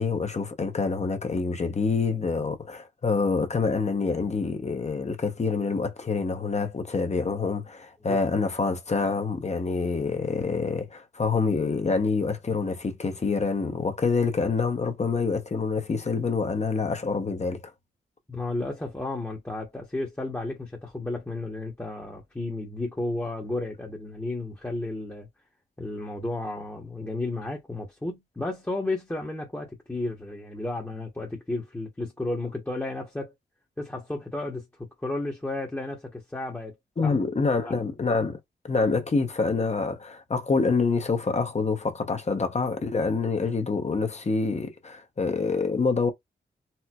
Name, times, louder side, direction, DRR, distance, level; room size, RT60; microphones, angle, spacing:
voice 1, 0.0-17.6 37.0-38.4 38.6-46.1, left 4 dB, 35° left, 0.7 m, -26 dB
voice 2, 18.3-25.3 25.8-33.3 33.8-34.7 35.0-36.7 37.0-37.1 37.5-37.7, left 2 dB, 10° left, 0.9 m, -33 dB
4.3 x 2.1 x 2.2 m
cardioid pair, 75°, 19 cm